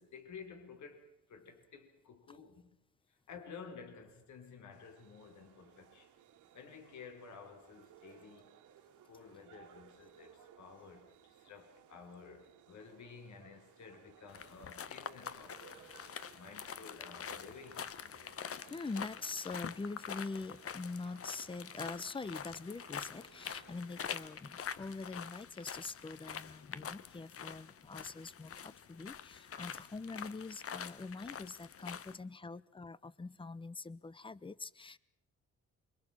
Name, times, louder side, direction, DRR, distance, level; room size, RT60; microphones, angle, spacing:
voice 1, 0.0-2.8 3.1-6.1 6.5-8.6 9.0-15.8 16.3-17.9, left 5 dB, 70° left, 4.7 m, -53 dB
sound 1, 4.7-24.3, right 10 dB, 85° right, 2.7 m, -62 dB
sound 2, 14.3-32.2, left 8 dB, 50° left, 1.3 m, -46 dB
voice 2, 18.7-35.0, left 3 dB, 15° left, 0.9 m, -44 dB
28.0 x 24.5 x 6.0 m
cardioid pair, 90°, 30 cm